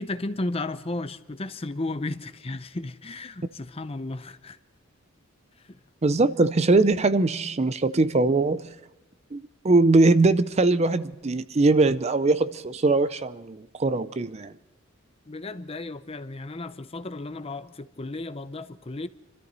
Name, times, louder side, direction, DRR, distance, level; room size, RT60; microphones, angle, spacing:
voice 1, 0.0-4.6 5.7-5.8 15.3-19.1, left 2 dB, 30° left, 0.6 m, -34 dB
voice 2, 6.0-8.7 9.3-14.5, right 3 dB, 30° right, 0.5 m, -21 dB
26.0 x 13.5 x 4.0 m
head